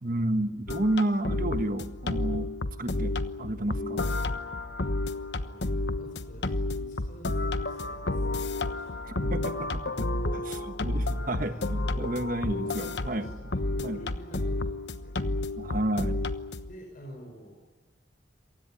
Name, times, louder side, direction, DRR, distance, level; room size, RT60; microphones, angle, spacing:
voice 1, 0.0-2.5 2.8-4.1 9.1-13.3 13.8-14.0 15.6-16.2, right 1 dB, 45° right, 9 dB, 1.5 m, -31 dB
sound 1, 0.7-16.7, left 2 dB, 65° left, 1.1 m, -31 dB
voice 2, 5.2-8.9 11.3-12.1 12.5-15.2 15.6-15.7 16.7-17.5, right 1 dB, 45° left, 0 dB, 5.3 m, -49 dB
27.5 x 16.0 x 10.0 m, 1.3 s
head